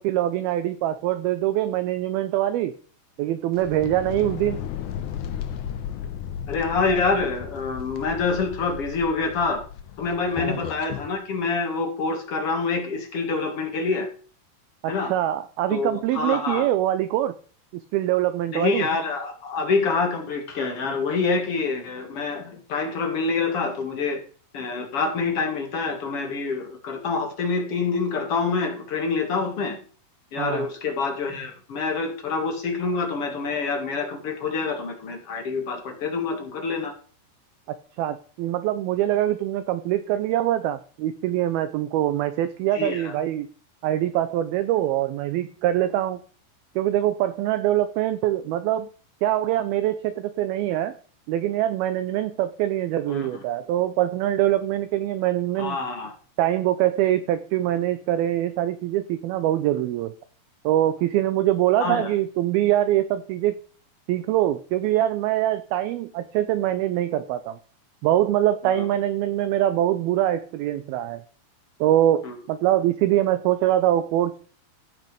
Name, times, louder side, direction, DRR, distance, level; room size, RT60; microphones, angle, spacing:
voice 1, 0.0-2.7 3.2-4.6 10.4-10.6 14.8-17.4 17.7-18.9 30.4-30.7 38.0-43.5 43.8-46.2 46.8-48.9 49.2-50.9 51.3-55.8 56.4-60.1 60.6-63.6 64.1-67.6 68.0-71.2 71.8-72.2 72.5-74.5, right 13 dB, 80° right, 11 dB, 2.3 m, -23 dB
sound 1, 3.5-11.1, left 9 dB, 80° left, 1.7 m, -35 dB
voice 2, 6.5-9.6 10.0-14.1 14.9-15.1 15.7-16.6 18.5-24.2 24.5-29.8 30.3-36.9 42.7-43.1 53.1-53.3 55.6-56.1 61.8-62.1 68.6-68.9 72.2-72.4, left 4 dB, 45° left, 4 dB, 2.0 m, -26 dB
16.0 x 5.5 x 5.3 m, 0.41 s
omnidirectional pair, 5.0 m